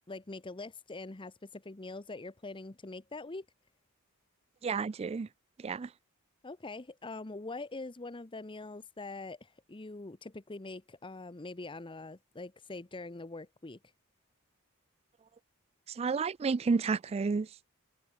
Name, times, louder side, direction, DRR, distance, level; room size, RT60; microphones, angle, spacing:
voice 1, 0.1-3.5 6.4-13.8, left 2 dB, 25° left, 0.8 m, -43 dB
voice 2, 4.6-5.3 5.6-5.9 15.9-17.5, right 4 dB, 30° right, 0.3 m, -31 dB
head